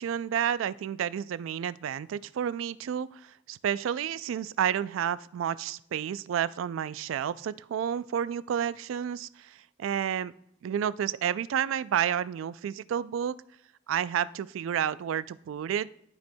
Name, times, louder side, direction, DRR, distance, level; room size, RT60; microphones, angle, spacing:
voice 1, 0.0-10.3 10.6-13.4 13.9-15.9, right 9 dB, 85° right, 18 dB, 0.3 m, -30 dB
12.0 x 4.3 x 2.2 m, 0.76 s
head